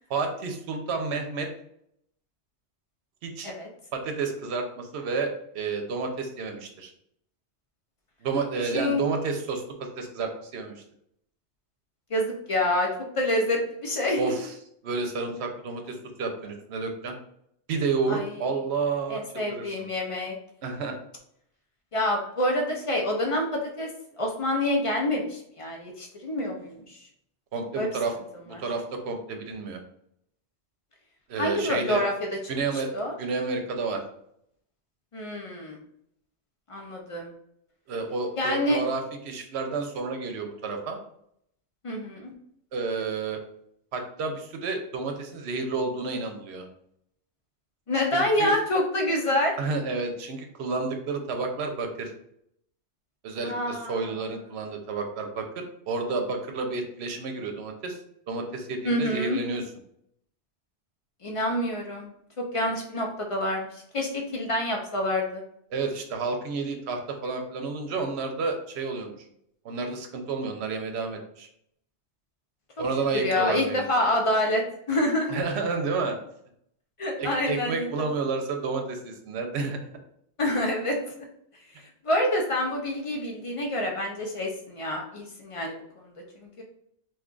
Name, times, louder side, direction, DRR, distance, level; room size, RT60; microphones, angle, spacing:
voice 1, 0.1-1.5 3.2-3.5 3.9-6.9 8.2-10.8 14.2-14.5 14.8-17.2 17.7-19.8 20.6-21.0 27.5-28.1 28.5-29.8 31.3-32.0 32.5-32.9 33.2-34.0 37.9-41.0 42.7-43.4 43.9-46.7 48.1-48.6 49.6-52.1 53.2-58.0 58.3-59.6 65.7-69.2 69.6-71.5 72.8-74.1 75.3-76.2 77.2-79.8, right 4 dB, 70° right, 4 dB, 0.8 m, -30 dB
voice 2, 12.1-12.9 13.1-14.3 18.1-18.4 19.1-20.4 21.9-27.0 27.8-27.9 28.5-28.6 31.4-32.1 32.4-33.1 35.1-35.8 36.7-37.3 38.4-38.8 41.8-42.3 47.9-49.6 53.4-54.0 58.8-59.4 61.2-62.1 62.4-65.4 73.1-75.4 77.0-77.9 80.4-81.3 81.7-86.6, left 1 dB, 55° left, 1 dB, 0.3 m, -27 dB
2.7 x 2.3 x 3.7 m, 0.72 s
omnidirectional pair, 1.2 m